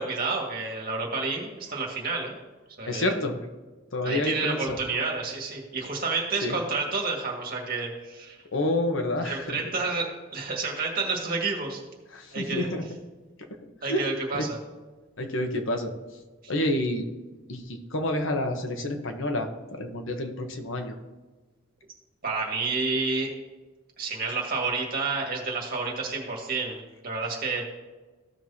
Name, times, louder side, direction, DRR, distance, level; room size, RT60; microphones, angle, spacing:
voice 1, 0.0-2.4 2.8-3.2 4.0-8.4 9.2-11.8 12.3-12.7 13.8-14.6 22.2-23.3 24.0-27.6, right 3 dB, 45° right, -1 dB, 2.1 m, -30 dB
voice 2, 2.9-3.4 3.9-4.8 6.4-6.6 8.5-9.6 12.1-12.8 13.9-14.0 14.3-14.5 15.2-15.9 16.5-17.1 17.5-20.9, left 1 dB, 70° left, 5 dB, 1.1 m, -28 dB
15.0 x 6.2 x 2.9 m, 1.3 s
head